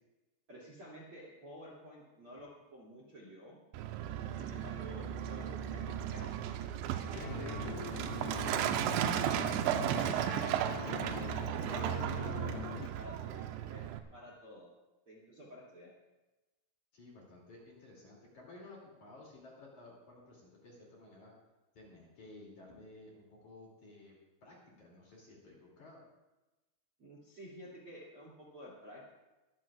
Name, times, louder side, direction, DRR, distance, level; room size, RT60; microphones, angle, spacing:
voice 1, 0.5-3.6 4.3-6.6 7.0-8.7 9.4-12.0 12.4-14.7 15.1-15.9 27.0-29.1, equal, 35° right, -4 dB, 2.5 m, -51 dB
Truck, 3.7-14.0, right 10 dB, 80° right, 2.7 m, -35 dB
sound 1, 7.1-12.9, left 7 dB, 80° left, 2.4 m, -43 dB
voice 2, 16.9-21.3 21.7-24.2 24.4-26.0, left 2 dB, 45° left, -3 dB, 3.5 m, -55 dB
23.5 x 14.5 x 2.4 m, 1.1 s
omnidirectional pair, 5.7 m